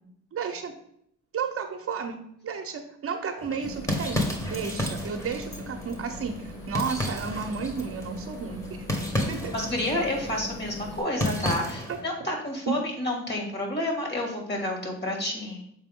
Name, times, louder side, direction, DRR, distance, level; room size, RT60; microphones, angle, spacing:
voice 1, 0.3-0.7 1.3-2.2 2.4-8.8 9.3-9.5 11.9-12.0 12.7-12.8, right 6 dB, 50° right, 4 dB, 0.9 m, -32 dB
sound 1, 3.4-12.1, left 1 dB, 10° left, 1.4 m, -33 dB
sound 2, 3.6-11.0, left 2 dB, 70° left, 1.6 m, -41 dB
voice 2, 9.5-15.6, left 1 dB, 35° left, 1 dB, 2.6 m, -30 dB
6.8 x 4.4 x 3.7 m, 0.71 s
cardioid pair, 90°, 30 cm